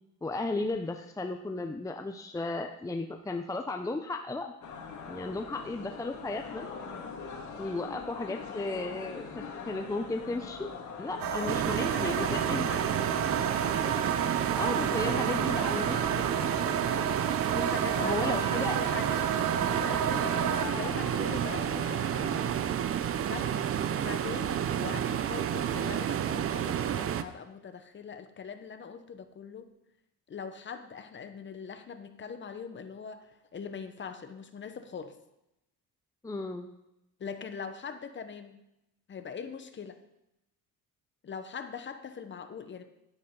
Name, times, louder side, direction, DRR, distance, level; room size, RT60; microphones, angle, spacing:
voice 1, 0.2-4.5 5.1-6.7 7.6-10.7 11.0-12.7 14.6-16.2 18.0-18.8 36.2-36.7, left 2 dB, 10° left, 5 dB, 0.6 m, -34 dB
sound 1, 4.6-22.1, left 5 dB, 55° left, 2.0 m, -42 dB
sound 2, 11.2-20.7, right 9 dB, 75° right, 0.9 m, -32 dB
voice 2, 11.4-13.1 14.8-16.3 17.5-22.5 23.2-29.7 30.3-35.1 37.2-38.6 39.1-40.0 41.2-42.8, left 6 dB, 35° left, 8 dB, 1.0 m, -42 dB
sound 3, 11.5-27.2, right 9 dB, 40° right, 0.6 m, -30 dB
10.5 x 9.8 x 3.8 m, 0.88 s
cardioid pair, 110°, 34 cm